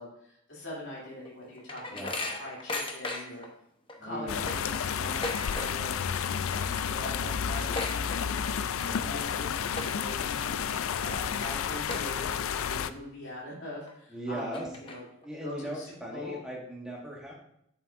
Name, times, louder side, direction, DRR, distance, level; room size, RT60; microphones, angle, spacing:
voice 1, 0.0-3.4 4.0-6.1 6.5-15.0 15.4-16.4, left 1 dB, 55° left, -6 dB, 2.8 m, -42 dB
sound 1, 1.0-3.5 3.9-4.0 4.3-6.0 6.2-6.6 6.9-7.0 7.3-8.7 9.1-9.3 9.7-10.2 10.7-10.8 11.4-11.5 11.9-12.6 13.0-13.1 13.9-14.0 14.4-15.3, left 2 dB, 25° left, 0.8 m, -37 dB
voice 2, 4.0-4.5 8.8-9.2 14.1-14.7 15.2-17.3, right 1 dB, 5° right, -3 dB, 1.6 m, -38 dB
sound 2, 4.3-12.9, left 7 dB, 75° left, 0.4 m, -31 dB
8.8 x 7.1 x 2.6 m, 0.74 s
head